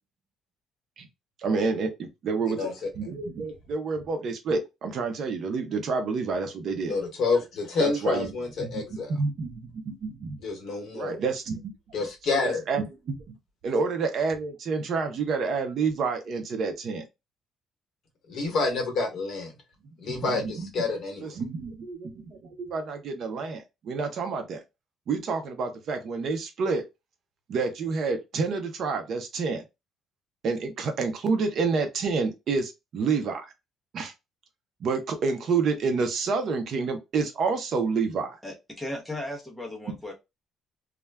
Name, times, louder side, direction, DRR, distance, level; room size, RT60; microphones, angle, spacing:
voice 1, 1.4-2.7 2.9-7.0 7.8-8.3 8.6-8.8 9.2-10.4 10.9-11.7 12.3-13.3 13.6-17.0 20.1-20.7 21.2-24.6 25.1-26.8 27.5-29.6 30.4-33.5 33.9-34.1 34.8-38.4, right 4 dB, 45° right, 0.4 m, -29 dB
voice 2, 6.8-9.1 10.4-11.2 11.9-12.6 18.3-19.5 20.0-21.3, left 4 dB, 45° left, 0.9 m, -28 dB
voice 3, 38.4-40.1, left 1 dB, ahead, 0.6 m, -36 dB
2.3 x 2.1 x 3.2 m
cardioid pair, 180°, 0 cm